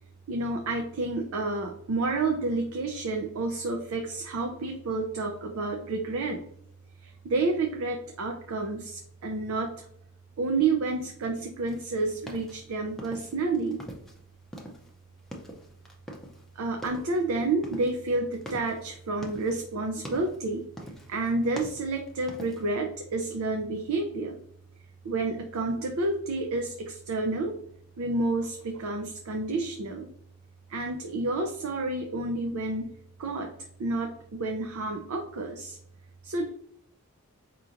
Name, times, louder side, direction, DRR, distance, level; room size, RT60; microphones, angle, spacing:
voice 1, 0.3-6.4 7.0-9.9 10.4-13.8 16.5-20.7 21.1-24.4 25.0-27.5 28.0-30.1 30.7-32.9 33.2-33.5 33.8-35.8 36.2-36.5, right 3 dB, 75° right, 3 dB, 0.5 m, -30 dB
sound 1, 11.7-14.2 14.5-16.5 16.7-17.2 17.6-19.6 20.0-20.4 20.8-21.2 21.4-22.7, equal, ahead, 0.5 m, -43 dB
4.8 x 2.9 x 2.5 m, 0.71 s
head